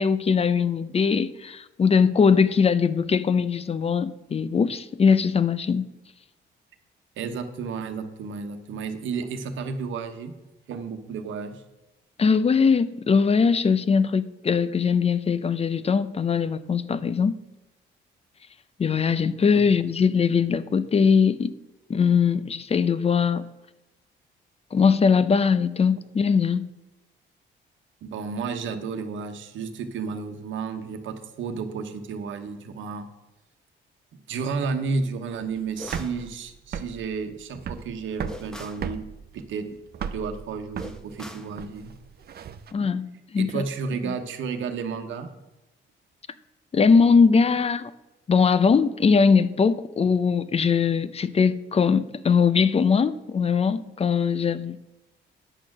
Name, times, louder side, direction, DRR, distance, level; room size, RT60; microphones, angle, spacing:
voice 1, 0.0-5.9 12.2-17.4 18.8-21.5 21.9-23.4 24.7-26.6 42.7-43.0 43.3-43.6 46.7-47.9 48.3-54.8, left 5 dB, 30° left, 0.6 m, -21 dB
voice 2, 7.2-10.3 10.7-11.6 19.5-19.6 28.0-33.1 34.1-39.0 39.3-39.7 40.1-41.9 42.8-42.9 43.4-45.3, right 5 dB, 75° right, 1.1 m, -32 dB
sound 1, 35.5-42.7, right 7 dB, 55° right, 0.7 m, -36 dB
sound 2, 35.8-36.2 38.3-38.9 40.8-41.5, equal, 5° left, 0.9 m, -41 dB
10.0 x 6.5 x 6.1 m
cardioid pair, 90°, 20 cm